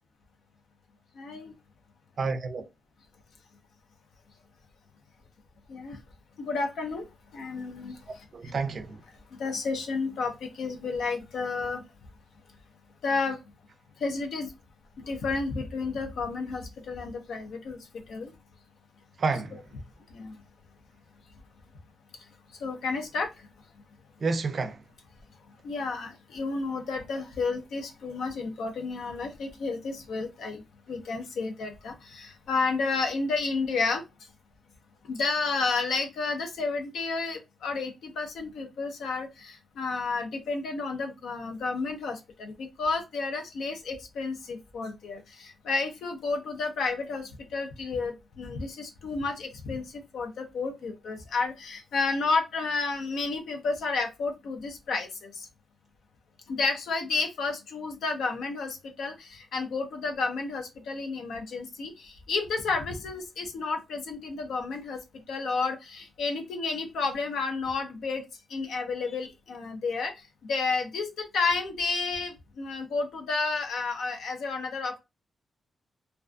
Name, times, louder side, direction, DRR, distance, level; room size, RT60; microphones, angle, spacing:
voice 1, 1.1-1.5 5.7-6.0 6.4-7.1 7.3-8.2 9.3-11.8 13.0-13.4 14.0-14.5 15.0-18.3 20.1-20.4 22.5-23.5 25.6-30.6 30.9-34.0 35.0-55.5 56.5-68.2 68.5-75.0, left 4 dB, 90° left, 0.5 m, -31 dB
voice 2, 2.2-2.7 8.1-9.0 19.2-19.6 24.2-24.8, right 4 dB, 45° right, 0.3 m, -30 dB
2.3 x 2.3 x 2.4 m
wide cardioid pair, 150°, 0 cm